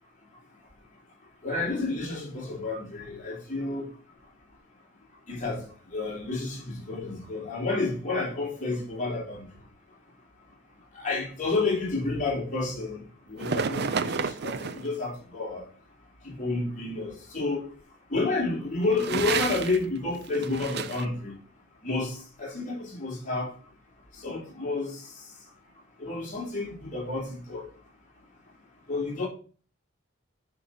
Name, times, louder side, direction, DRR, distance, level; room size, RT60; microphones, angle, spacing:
voice 1, 1.4-3.9 5.3-9.5 10.9-15.7 16.2-17.6 18.1-21.4 21.8-23.5 24.1-25.2 26.0-27.7 28.9-29.3, left 3 dB, 40° left, 3.5 m, -30 dB
sound 1, 13.4-14.9 18.8-19.8 20.1-21.0, right 6 dB, 55° right, 0.6 m, -30 dB
10.5 x 4.2 x 5.8 m
head